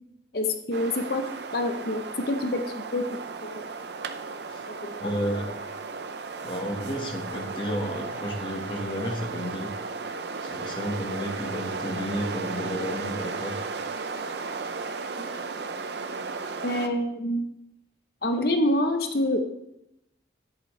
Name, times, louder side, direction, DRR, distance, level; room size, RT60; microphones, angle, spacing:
voice 1, 0.3-1.2 1.5-3.2 3.5-3.6 4.7-5.2 15.2-15.3 16.6-17.5 18.2-19.4, left 1 dB, 55° left, 6 dB, 0.7 m, -27 dB
sound 1, 0.7-16.9, right 4 dB, 70° right, 0.6 m, -35 dB
voice 2, 5.0-5.5 6.4-9.8 10.4-13.6, equal, 25° left, 1 dB, 1.4 m, -32 dB
11.0 x 8.1 x 3.2 m, 0.87 s
head